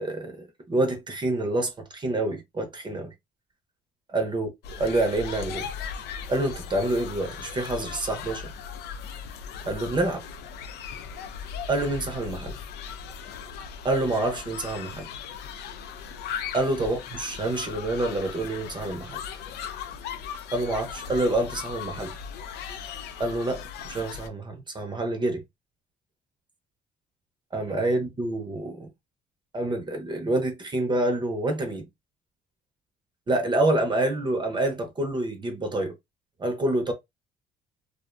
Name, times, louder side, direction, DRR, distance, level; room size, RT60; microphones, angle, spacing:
voice 1, 0.0-3.1 4.1-4.5 4.8-5.7 6.3-8.5 9.7-10.2 11.7-12.6 13.8-15.1 16.5-19.2 20.5-22.2 23.2-25.4 27.5-28.9 29.5-31.9 33.3-35.9 36.4-36.9, right 2 dB, 25° right, 0.7 m, -27 dB
sound 1, 4.6-24.3, left 7 dB, 80° left, 0.4 m, -38 dB
2.4 x 2.2 x 2.4 m
cardioid pair, 110°, 17 cm